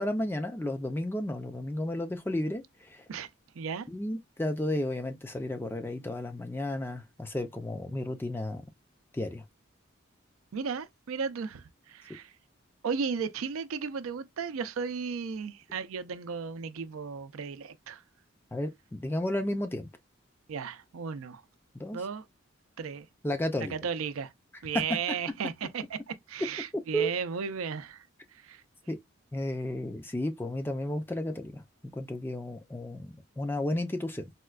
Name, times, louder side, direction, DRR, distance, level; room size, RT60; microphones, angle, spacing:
voice 1, 0.0-3.0 3.9-8.6 9.1-9.4 18.5-19.9 21.8-22.0 23.2-23.7 26.9-27.1 28.9-29.0 29.3-31.6 31.9-34.3, left 1 dB, 10° left, 0.3 m, -33 dB
voice 2, 3.6-3.9 10.5-12.3 12.8-18.0 20.5-21.4 21.9-22.3 22.8-23.1 23.6-24.3 24.6-28.0 28.3-28.6, right 6 dB, 90° right, 0.4 m, -35 dB
4.2 x 2.2 x 2.3 m
head